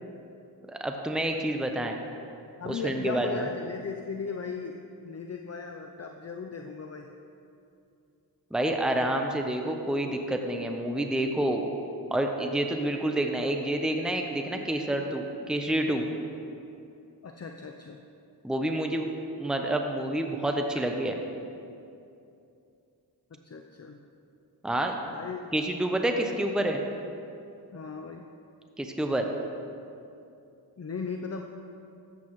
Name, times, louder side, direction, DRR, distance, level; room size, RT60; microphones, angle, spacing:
voice 1, 0.7-2.0 2.7-3.5 8.5-11.6 12.1-16.1 18.4-19.1 19.4-21.2 24.6-25.0 25.5-26.8 28.8-29.3, right 1 dB, ahead, 3 dB, 0.8 m, -28 dB
voice 2, 2.6-4.8 5.0-7.1 17.2-18.0 23.4-24.0 25.1-25.4 27.7-28.2 30.8-31.4, left 5 dB, 40° left, 3 dB, 0.6 m, -37 dB
13.0 x 8.5 x 3.1 m, 2.6 s
cardioid pair, 40°, 40 cm